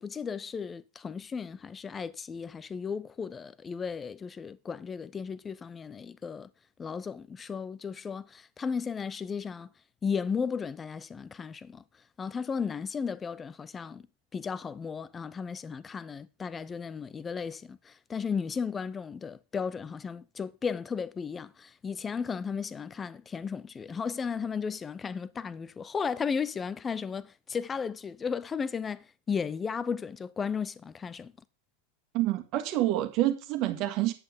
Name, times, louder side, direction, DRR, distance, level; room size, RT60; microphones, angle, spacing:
voice 1, 0.0-6.5 6.8-9.7 10.0-11.8 12.2-14.1 14.3-31.3, left 6 dB, 20° left, 0.7 m, -35 dB
voice 2, 32.1-34.1, right 14 dB, 40° right, 1.7 m, -27 dB
10.0 x 8.5 x 5.1 m
figure-of-eight pair, 90°, 0 cm